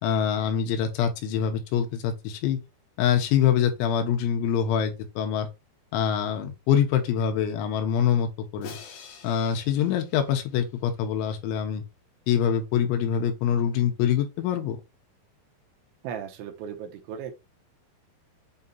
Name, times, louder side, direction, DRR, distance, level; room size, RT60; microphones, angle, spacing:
voice 1, 0.0-2.6 3.0-5.5 5.9-8.8 9.2-11.8 12.3-14.8, left 8 dB, 80° left, 3.4 m, -25 dB
Crash cymbal, 8.6-10.8, left 6 dB, 65° left, 2.7 m, -46 dB
voice 2, 16.0-17.4, right 8 dB, 85° right, 3.3 m, -36 dB
8.3 x 2.9 x 4.0 m
omnidirectional pair, 5.5 m